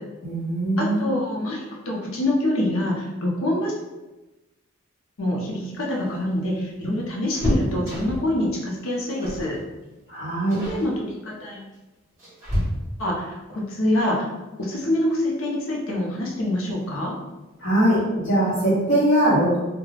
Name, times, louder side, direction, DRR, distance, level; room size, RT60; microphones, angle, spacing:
voice 1, 0.2-1.1 10.1-10.6 17.6-19.6, right 1 dB, 60° left, -13 dB, 1.0 m, -21 dB
voice 2, 0.8-3.7 5.2-9.6 10.6-11.6 13.0-14.3 14.6-17.2, left 1 dB, 85° left, -2 dB, 0.7 m, -25 dB
sound 1, 5.7-8.4 9.2-9.5 9.8-10.1 10.5-10.9 11.7-13.2 14.9-15.0 15.4-15.5 16.7-17.1 17.4-17.5 17.8-18.0, equal, 15° right, 1.0 m, -30 dB
2.4 x 2.2 x 3.2 m, 1.1 s
head